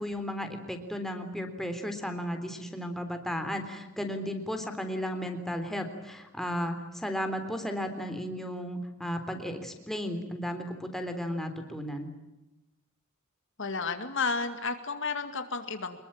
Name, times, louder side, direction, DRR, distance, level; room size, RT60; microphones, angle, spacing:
voice 1, 0.0-12.1, equal, ahead, 5 dB, 3.6 m, -34 dB
voice 2, 13.6-16.0, left 4 dB, 65° left, 8 dB, 2.3 m, -32 dB
25.5 x 22.0 x 8.8 m, 0.98 s
head